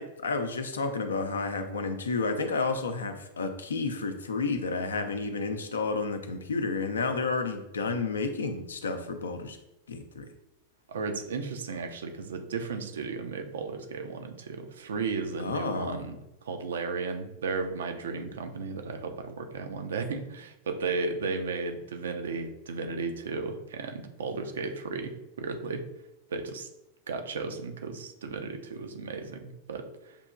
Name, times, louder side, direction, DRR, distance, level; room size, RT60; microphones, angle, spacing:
voice 1, 0.0-9.6 9.9-10.3 15.4-16.0, left 4 dB, 70° left, 7 dB, 0.5 m, -31 dB
voice 2, 10.9-25.9 26.3-26.7 27.1-30.2, right 4 dB, 65° right, 6 dB, 0.5 m, -34 dB
6.7 x 2.8 x 2.4 m, 0.89 s
figure-of-eight pair, 90°, 0 cm